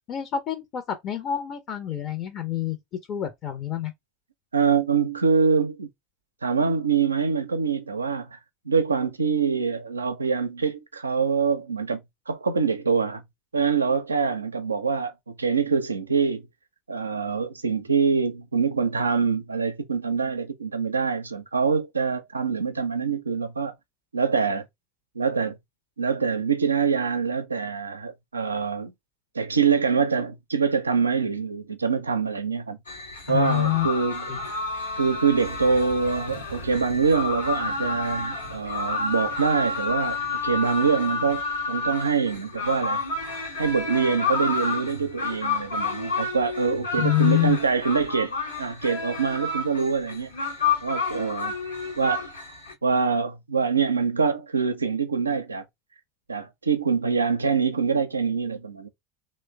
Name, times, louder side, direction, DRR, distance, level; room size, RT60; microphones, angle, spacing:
voice 1, 0.1-2.8 3.1-3.9 33.3-33.9 34.3-34.4 47.0-47.6, left 13 dB, 45° left, 0.6 m, -26 dB
voice 2, 4.5-5.9 6.4-8.4 8.7-12.0 12.3-13.2 13.5-16.4 16.9-23.7 24.1-24.6 25.2-25.6 26.0-28.9 29.3-32.8 33.3-34.4 35.0-41.4 41.7-43.0 43.6-48.3 48.6-50.3 50.8-51.5 52.0-52.2 52.8-55.6 56.3-58.9, right 5 dB, 85° right, 0.4 m, -24 dB
sound 1, 32.9-52.7, left 4 dB, 80° left, 0.9 m, -30 dB
3.0 x 2.1 x 3.2 m
figure-of-eight pair, 75°, 0 cm